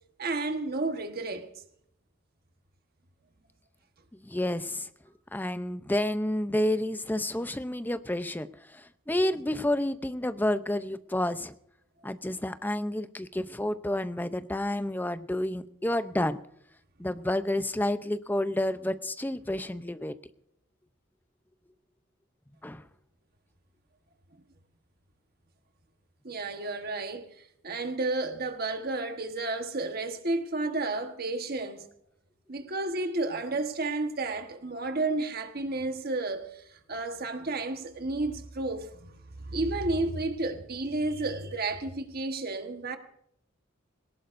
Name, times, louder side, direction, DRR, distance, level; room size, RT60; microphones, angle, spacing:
voice 1, 0.2-1.5 26.2-27.3 27.6-31.9 32.5-43.0, right 2 dB, 50° right, 1.3 m, -32 dB
voice 2, 4.1-4.9 5.3-8.5 8.7-11.5 12.0-16.4 17.0-20.1 22.6-22.8, left 1 dB, 10° left, 0.6 m, -30 dB
20.5 x 18.0 x 2.6 m
head